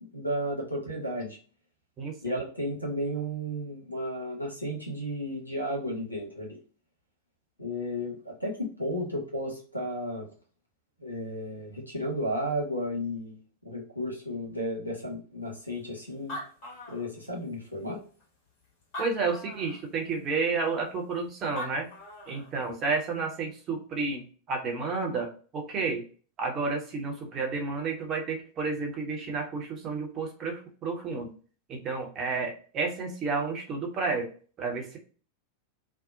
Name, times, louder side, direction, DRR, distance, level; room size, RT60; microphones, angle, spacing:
voice 1, 0.1-1.4 2.2-6.6 7.6-10.3 11.0-13.4 13.6-16.4 16.9-18.0, equal, 90° left, -3 dB, 0.9 m, -33 dB
voice 2, 2.0-2.4 19.0-21.9 22.3-26.0 26.4-31.3 31.7-34.3 34.6-35.0, right 4 dB, 30° right, 1 dB, 0.8 m, -31 dB
Animal, 15.9-16.0 16.1-17.5 18.2-18.3 18.8-19.8 21.3-21.4 21.6-22.5, left 1 dB, 40° left, 1.3 m, -40 dB
2.7 x 2.0 x 2.6 m, 0.39 s
figure-of-eight pair, 90°, 0 cm